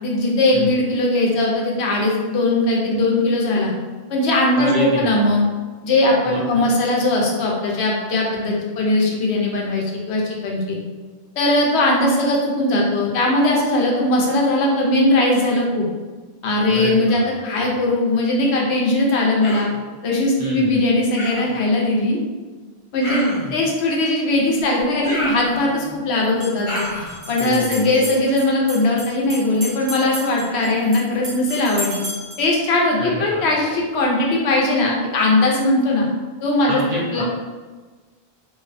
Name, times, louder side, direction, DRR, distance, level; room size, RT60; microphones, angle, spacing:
voice 1, 0.0-3.7 4.1-5.4 5.8-10.8 11.4-15.9 16.4-19.7 20.0-22.2 22.9-23.2 23.5-26.8 27.3-32.0 32.4-36.1 36.4-36.8 37.1-37.2, left 2 dB, 85° left, -2 dB, 0.9 m, -19 dB
voice 2, 4.6-5.3 6.2-6.6 16.7-17.7 20.4-20.8 27.4-28.1 33.0-33.7 36.7-37.2, equal, 60° right, -4 dB, 0.7 m, -29 dB
Human voice, 19.4-19.8 21.2-21.6 23.0-23.6 25.0-25.9 26.7-27.2, equal, 55° left, 0.3 m, -29 dB
sound 1, 24.6-24.7 26.2-32.5, right 1 dB, 90° right, 1.0 m, -34 dB
2.5 x 2.1 x 2.5 m, 1.4 s
omnidirectional pair, 1.1 m